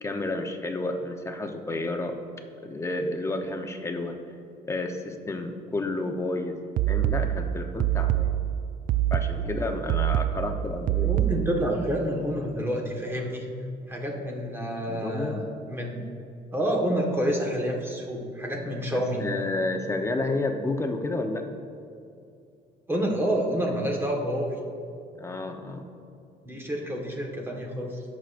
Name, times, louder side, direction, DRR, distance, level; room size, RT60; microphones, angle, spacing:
voice 1, 0.0-2.2 2.6-4.2 4.6-6.6 6.9-8.3 9.1-11.2 14.9-15.4 18.9-21.5 25.1-25.8, left 2 dB, 15° left, 4 dB, 0.8 m, -31 dB
sound 1, 6.8-11.7, right 12 dB, 55° right, 0.4 m, -25 dB
voice 2, 9.4-9.8 11.0-13.5 13.9-16.0 16.5-19.3 22.9-24.5 26.4-28.0, equal, 15° right, 0 dB, 1.5 m, -28 dB
17.0 x 6.3 x 2.6 m, 2.5 s
cardioid pair, 110°, 17 cm